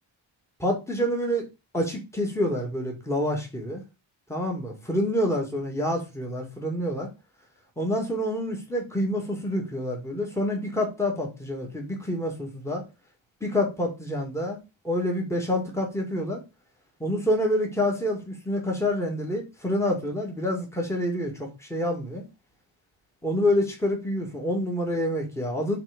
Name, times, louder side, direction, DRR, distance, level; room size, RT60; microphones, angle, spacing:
voice 1, 0.6-1.4 1.7-3.8 4.3-7.1 7.8-12.8 13.4-14.6 14.8-16.4 17.0-22.2 23.2-25.8, left 1 dB, 5° left, 2.1 m, -27 dB
6.0 x 3.9 x 5.3 m
wide cardioid pair, 100°, 48 cm